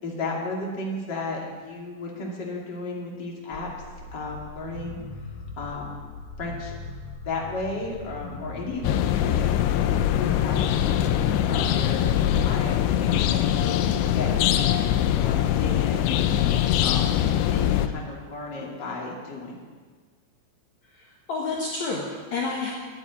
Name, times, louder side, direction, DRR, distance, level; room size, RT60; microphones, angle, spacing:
voice 1, 0.0-3.7 4.1-5.0 5.6-6.0 6.4-6.7 7.2-12.0 12.3-14.7 15.1-19.6, left 2 dB, 35° left, -2 dB, 1.9 m, -34 dB
sound 1, 3.5-14.4, left 2 dB, 55° left, 4.9 m, -41 dB
sound 2, 8.8-17.9, left 11 dB, 85° left, 2.6 m, -22 dB
voice 2, 20.9-22.7, left 3 dB, 70° left, -3 dB, 1.7 m, -30 dB
11.5 x 10.0 x 9.2 m, 1.5 s
omnidirectional pair, 5.8 m